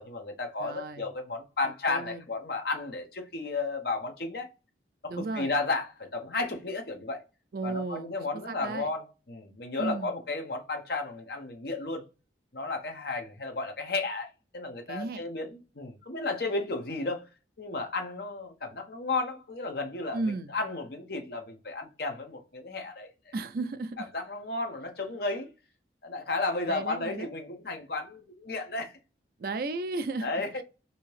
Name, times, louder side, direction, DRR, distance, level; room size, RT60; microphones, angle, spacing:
voice 1, 0.0-4.5 5.0-7.2 7.6-12.1 12.5-17.3 17.6-23.3 24.0-25.5 26.0-29.0 30.2-30.6, left 3 dB, 55° left, 0.8 m, -33 dB
voice 2, 0.6-1.1 1.9-2.3 5.1-5.5 7.5-8.2 8.5-8.9 9.8-10.1 14.9-15.2 20.1-20.5 23.3-24.0 26.7-27.3 29.4-30.3, right 3 dB, 50° right, 0.4 m, -34 dB
2.7 x 2.7 x 3.1 m
head